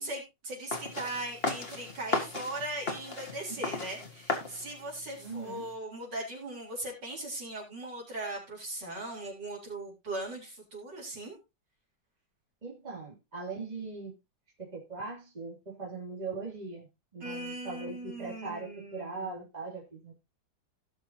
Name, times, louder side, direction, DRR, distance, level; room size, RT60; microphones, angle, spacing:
voice 1, 0.0-11.4 17.2-19.3, right 1 dB, 70° right, -2 dB, 4.7 m, -39 dB
sound 1, 0.7-5.7, left 3 dB, 30° left, 1.9 m, -36 dB
voice 2, 5.2-5.7 12.6-14.1 14.6-16.9 17.1-20.1, right 4 dB, 20° right, -3 dB, 3.0 m, -40 dB
17.5 x 6.3 x 2.8 m, 0.24 s
omnidirectional pair, 2.0 m